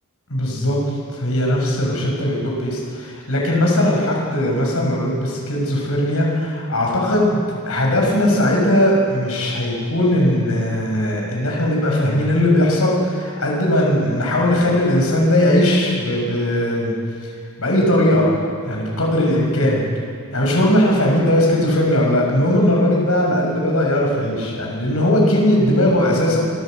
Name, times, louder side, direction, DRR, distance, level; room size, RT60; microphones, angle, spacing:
voice 1, 0.3-0.8 1.1-16.9 17.6-18.3 18.6-19.8 20.3-26.4, left 1 dB, 70° left, -2 dB, 6.5 m, -18 dB
25.0 x 15.0 x 7.9 m, 2.3 s
head